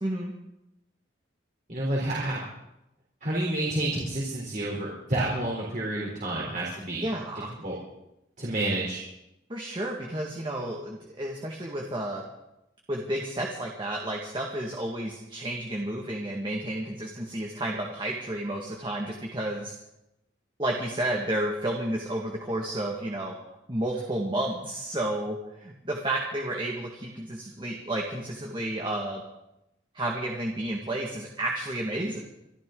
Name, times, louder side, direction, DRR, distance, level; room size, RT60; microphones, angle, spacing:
voice 1, 0.0-0.3 7.0-7.6 9.5-12.2 12.9-19.7 20.6-23.3 23.7-29.2 29.9-32.2, right 1 dB, 25° right, -1 dB, 1.8 m, -31 dB
voice 2, 1.7-2.4 3.2-7.1 7.6-7.7 8.4-9.0, right 1 dB, 40° right, -4 dB, 3.7 m, -29 dB
25.5 x 13.0 x 3.9 m, 0.88 s
head